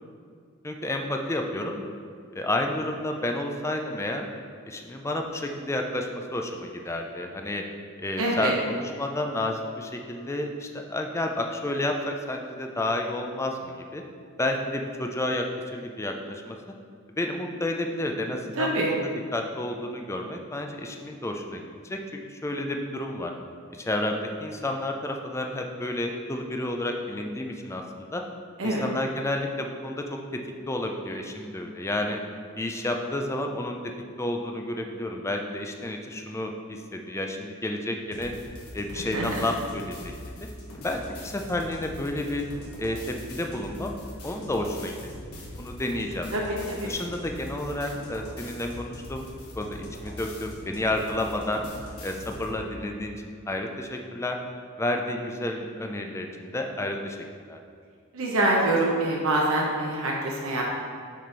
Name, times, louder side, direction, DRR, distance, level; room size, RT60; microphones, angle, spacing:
voice 1, 0.6-1.8 2.3-4.2 4.7-7.6 8.0-14.0 14.4-15.4 15.7-16.6 17.2-22.0 22.3-23.3 23.8-28.2 28.6-30.4 30.7-32.2 32.6-33.8 34.2-38.3 38.7-40.0 40.4-40.5 40.8-42.4 42.8-43.9 44.2-45.1 45.6-46.3 46.7-49.3 49.6-51.6 52.0-54.4 54.8-57.2 57.4-57.6, left 1 dB, 15° left, 3 dB, 0.4 m, -31 dB
voice 2, 8.2-8.5 18.6-18.9 28.6-28.8 39.0-39.4 46.3-46.9 58.1-60.6, right 1 dB, 65° right, -2 dB, 0.8 m, -25 dB
sound 1, 38.1-52.6, left 1 dB, 80° left, 1.3 m, -42 dB
6.1 x 4.3 x 4.5 m, 2.2 s
head